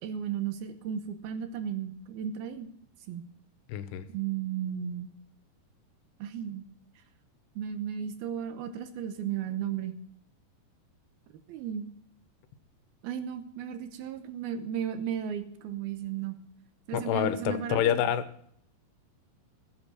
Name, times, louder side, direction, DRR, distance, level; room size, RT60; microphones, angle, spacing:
voice 1, 0.0-2.7 3.1-3.3 4.1-5.1 6.2-6.7 7.6-9.9 11.5-11.9 13.0-16.4 16.9-17.9, right 9 dB, 75° right, 9 dB, 2.7 m, -34 dB
voice 2, 3.7-4.1 16.9-18.2, left 10 dB, 90° left, 12 dB, 3.0 m, -27 dB
16.0 x 8.1 x 6.4 m, 0.64 s
omnidirectional pair, 4.8 m